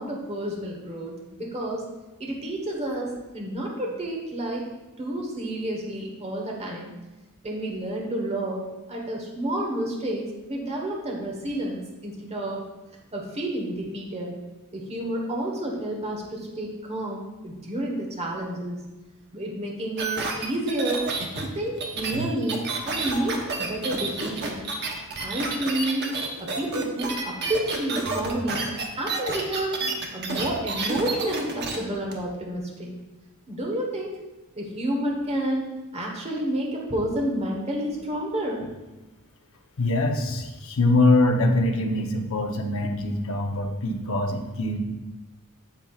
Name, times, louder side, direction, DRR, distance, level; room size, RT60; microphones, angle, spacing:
voice 1, 0.0-1.8 2.2-4.6 5.0-6.9 7.4-12.6 13.1-14.3 14.7-18.8 19.3-21.0 21.5-23.3 23.6-24.7 25.2-26.1 26.4-28.7 29.0-29.8 30.1-32.9 33.5-34.2 34.6-35.7 35.9-38.6, right 1 dB, 30° right, -1 dB, 1.2 m, -30 dB
sound 1, 20.0-31.8 32.1-32.2, right 3 dB, 50° right, 1.0 m, -30 dB
voice 2, 39.8-44.8, left 2 dB, 65° left, 3 dB, 0.9 m, -23 dB
8.7 x 7.3 x 2.4 m, 1.1 s
head